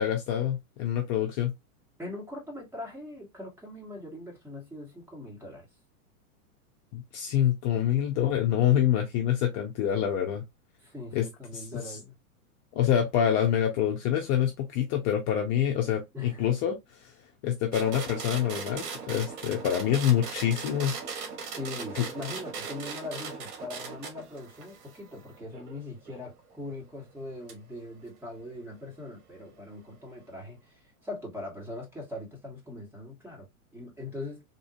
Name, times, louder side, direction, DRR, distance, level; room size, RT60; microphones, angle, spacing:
voice 1, 0.0-1.5 6.9-10.4 11.1-11.3 11.5-11.7 12.7-17.1 17.4-20.9 21.9-22.0, left 10 dB, 35° left, 0.7 m, -26 dB
voice 2, 2.0-5.7 10.8-12.1 16.1-16.5 21.5-33.5 33.7-34.4, left 2 dB, 5° right, 1.4 m, -41 dB
sound 1, 17.7-26.3 27.5-27.6, right 5 dB, 50° right, 1.4 m, -39 dB
3.6 x 2.7 x 2.6 m
hypercardioid pair, 130°, 44 cm